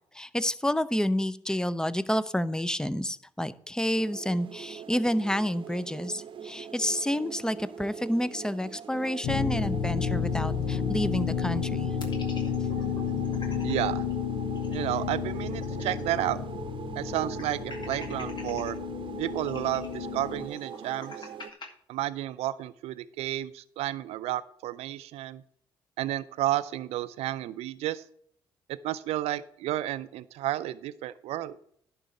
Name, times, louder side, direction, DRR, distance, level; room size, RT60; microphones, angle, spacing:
voice 1, 0.1-11.9, equal, 5° left, 16 dB, 0.7 m, -29 dB
sound 1, 3.9-21.5, right 7 dB, 50° right, 0.8 m, -42 dB
sound 2, 9.2-20.5, left 7 dB, 70° left, 0.8 m, -31 dB
sound 3, 12.0-13.7 14.1-14.2 14.5-16.3 16.5-16.6 17.1-18.7 19.4-21.7, left 3 dB, 45° left, 2.1 m, -45 dB
voice 2, 13.6-14.0 14.7-16.4 17.0-18.8 19.2-21.3 21.9-25.4 26.0-28.0 28.7-31.6, right 14 dB, 75° right, 14 dB, 0.4 m, -31 dB
11.0 x 4.0 x 7.6 m, 0.64 s
hypercardioid pair, 50°, 11 cm